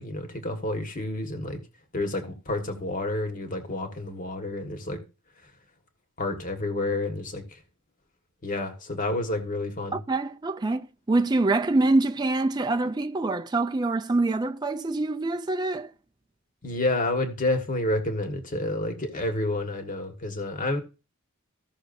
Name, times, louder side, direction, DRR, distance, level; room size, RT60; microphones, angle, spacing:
voice 1, 0.0-1.6 1.9-5.0 6.2-7.6 8.4-10.0 16.6-20.8, left 2 dB, 35° left, 1.6 m, -29 dB
voice 2, 9.9-15.9, right 2 dB, 20° right, 0.4 m, -25 dB
15.5 x 6.3 x 2.6 m
head